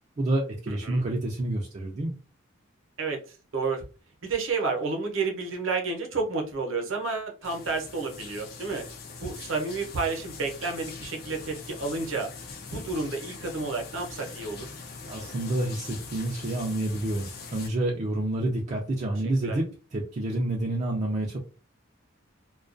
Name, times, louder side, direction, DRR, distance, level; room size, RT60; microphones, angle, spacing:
voice 1, 0.2-2.1 15.1-21.4, right 1 dB, 35° right, -1 dB, 0.3 m, -28 dB
voice 2, 0.7-1.1 3.0-3.8 4.2-8.9 9.2-12.3 12.7-14.7 19.4-19.6, right 4 dB, 70° right, 2 dB, 0.7 m, -30 dB
sound 1, 7.4-17.7, left 4 dB, 45° left, 0.4 m, -42 dB
2.2 x 2.2 x 2.4 m, 0.35 s
head